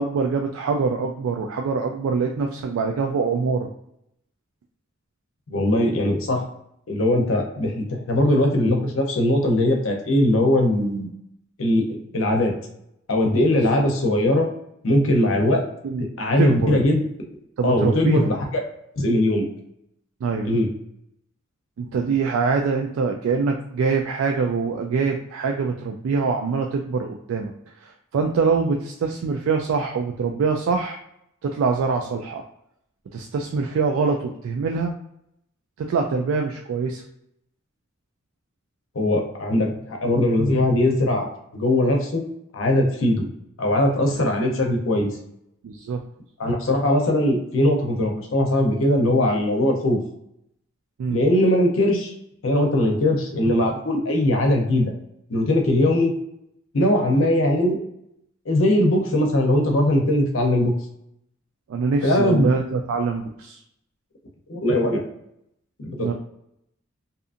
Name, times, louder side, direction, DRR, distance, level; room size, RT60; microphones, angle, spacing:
voice 1, 0.0-3.7 13.5-13.8 15.8-16.1 16.4-16.7 17.6-18.3 20.2-20.5 21.8-27.5 27.8-31.0 31.4-32.4 33.1-34.9 35.8-37.0 44.4-44.5 45.6-46.0 51.0-51.2 61.7-63.6 66.0-66.1, right 4 dB, 80° right, 2 dB, 0.3 m, -24 dB
voice 2, 5.5-6.4 6.9-11.1 11.6-12.5 13.1-14.5 14.8-15.6 16.0-17.0 17.6-18.4 19.0-19.4 20.4-20.7 38.9-42.2 42.5-43.2 43.6-45.1 46.4-50.0 51.1-52.1 52.4-54.9 55.3-56.1 56.7-57.8 58.5-60.7 62.0-62.5 64.5-65.0 65.8-66.1, left 1 dB, 70° left, 2 dB, 0.6 m, -20 dB
2.7 x 2.5 x 2.4 m, 0.77 s
head